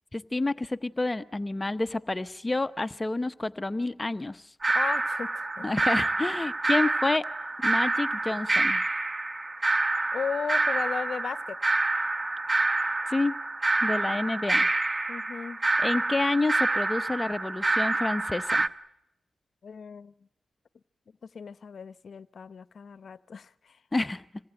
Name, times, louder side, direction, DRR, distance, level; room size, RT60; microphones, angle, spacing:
voice 1, 0.1-4.5 5.6-7.3 7.6-8.8 13.1-13.4 13.8-14.7 15.8-18.7 23.9-24.2, left 2 dB, 25° left, 0.9 m, -29 dB
sound 1, 4.6-18.7, right 2 dB, 30° right, 1.1 m, -27 dB
voice 2, 4.7-5.7 10.1-11.6 15.1-15.6 19.6-20.1 21.2-23.8, left 6 dB, 70° left, 0.9 m, -36 dB
26.5 x 19.0 x 9.1 m
cardioid pair, 55°, 0 cm